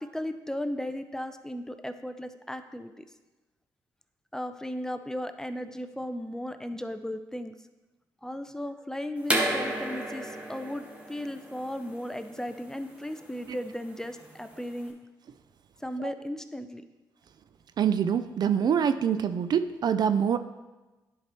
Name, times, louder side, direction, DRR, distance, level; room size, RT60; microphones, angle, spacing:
voice 1, 0.0-3.0 4.3-7.6 8.2-14.9 15.8-16.8, left 1 dB, 5° left, 9 dB, 0.5 m, -36 dB
sound 1, 9.2-14.8, right 1 dB, 15° right, 1.6 m, -33 dB
voice 2, 17.8-20.4, right 8 dB, 55° right, 12 dB, 0.4 m, -25 dB
10.5 x 4.7 x 3.0 m, 1.1 s
supercardioid pair, 65°, 8 cm